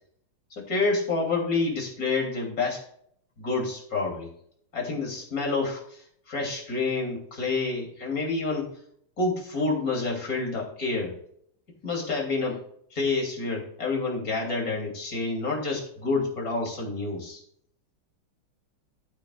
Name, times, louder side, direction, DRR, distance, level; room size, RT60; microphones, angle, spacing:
voice 1, 0.5-2.8 3.4-4.3 4.7-8.7 9.2-11.2 11.8-12.6 12.9-17.4, left 3 dB, 45° left, -1 dB, 3.3 m, -28 dB
14.0 x 8.2 x 2.4 m, 0.65 s
omnidirectional pair, 2.3 m